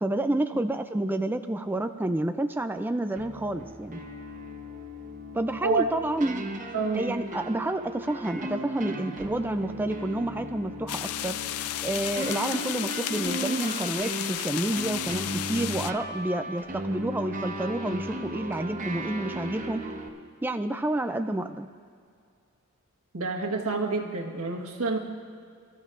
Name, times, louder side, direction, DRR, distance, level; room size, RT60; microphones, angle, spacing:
voice 1, 0.0-4.0 5.3-6.4 6.9-11.4 11.8-19.8 20.4-21.7, right 1 dB, 10° right, 8 dB, 0.3 m, -29 dB
sound 1, 3.2-20.1, right 1 dB, 35° right, 0.9 m, -36 dB
voice 2, 6.7-7.2 23.1-25.0, right 4 dB, 85° right, 1 dB, 1.5 m, -28 dB
sound 2, 10.9-15.9, left 12 dB, 90° left, 0.4 m, -33 dB
25.5 x 13.5 x 2.5 m, 2.2 s
head